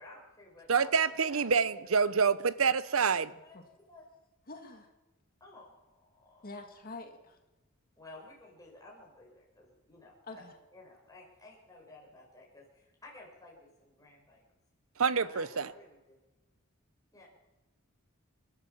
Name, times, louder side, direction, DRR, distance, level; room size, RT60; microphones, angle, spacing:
voice 1, 0.0-1.8 3.0-3.1 3.4-4.0 5.4-6.6 8.0-10.5 10.7-14.5 15.0-16.2 17.1-17.3, left 2 dB, 15° left, 6.9 m, -54 dB
voice 2, 0.7-3.3 15.0-15.7, right 5 dB, 75° right, 0.9 m, -27 dB
voice 3, 3.3-3.6 4.5-4.9 6.4-7.4 10.2-10.5, left 3 dB, 45° left, 2.0 m, -46 dB
29.5 x 12.5 x 7.3 m
head